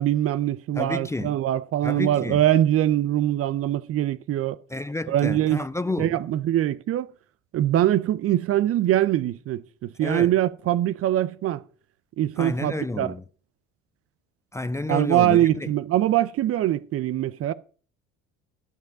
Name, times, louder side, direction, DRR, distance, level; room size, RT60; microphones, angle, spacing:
voice 1, 0.0-4.6 5.1-5.6 6.0-7.1 7.5-11.6 12.2-13.1 14.9-17.5, right 12 dB, 50° right, 0.6 m, -23 dB
voice 2, 0.8-1.4 1.8-2.4 4.7-6.2 10.0-10.3 12.4-13.2 14.5-15.7, left 2 dB, 10° left, 0.5 m, -30 dB
11.5 x 5.4 x 6.2 m
hypercardioid pair, 65°, 30 cm